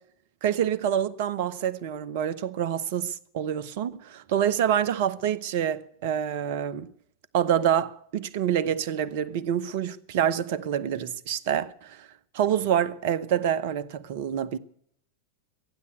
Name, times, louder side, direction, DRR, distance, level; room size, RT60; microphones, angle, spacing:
voice 1, 0.4-6.9 7.3-12.1 12.3-14.6, right 9 dB, 50° right, 0.8 m, -27 dB
14.5 x 9.6 x 9.3 m
figure-of-eight pair, 90°, 0 cm